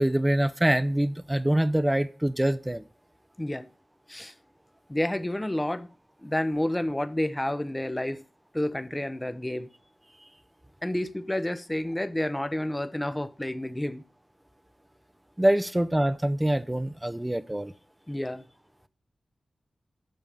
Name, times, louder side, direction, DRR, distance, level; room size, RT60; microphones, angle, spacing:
voice 1, 0.0-2.8 15.4-17.7, right 1 dB, 15° right, 0.7 m, -25 dB
voice 2, 4.9-5.9 6.2-8.2 8.5-9.7 10.8-14.0 18.1-18.4, left 1 dB, 15° left, 0.8 m, -30 dB
9.2 x 6.3 x 5.3 m
cardioid pair, 50°, 0 cm